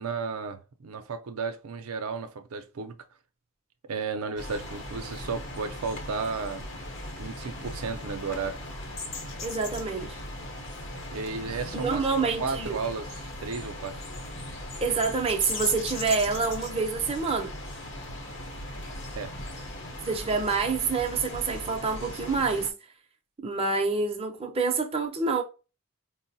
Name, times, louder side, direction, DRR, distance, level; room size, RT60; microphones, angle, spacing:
voice 1, 0.0-3.0 3.9-6.7 7.2-8.7 11.1-12.1 12.4-14.0 19.2-19.3, right 4 dB, 75° right, 0.5 m, -33 dB
sound 1, 4.4-22.7, left 1 dB, 55° left, 0.8 m, -38 dB
voice 2, 9.4-10.2 11.7-12.8 14.8-17.6 20.1-22.7 23.4-25.4, right 4 dB, 25° right, 0.5 m, -27 dB
4.6 x 2.0 x 2.6 m
head